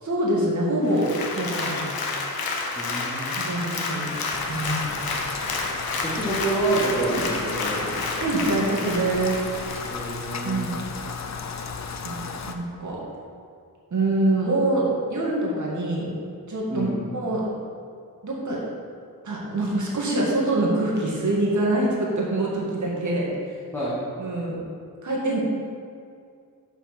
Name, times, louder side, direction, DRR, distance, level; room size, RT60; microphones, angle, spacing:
voice 1, 0.0-1.9 3.4-4.1 4.5-5.0 7.1-7.2 8.2-9.4 10.4-10.8 12.0-13.0 13.9-16.1 16.5-17.4 18.2-18.6 19.2-23.3 24.2-24.6 25.0-25.4, right 2 dB, 55° right, -5 dB, 1.9 m, -25 dB
Applause, 0.9-10.6 11.1-11.2, left 3 dB, 80° left, 1.0 m, -30 dB
voice 2, 2.7-3.5 6.0-8.2 9.9-10.7 16.7-17.0 23.7-24.0, right 2 dB, 5° left, -10 dB, 1.6 m, -28 dB
Rain, 4.3-12.5, left 5 dB, 50° left, 0.6 m, -35 dB
6.5 x 5.8 x 5.5 m, 2.3 s
wide cardioid pair, 125°, 36 cm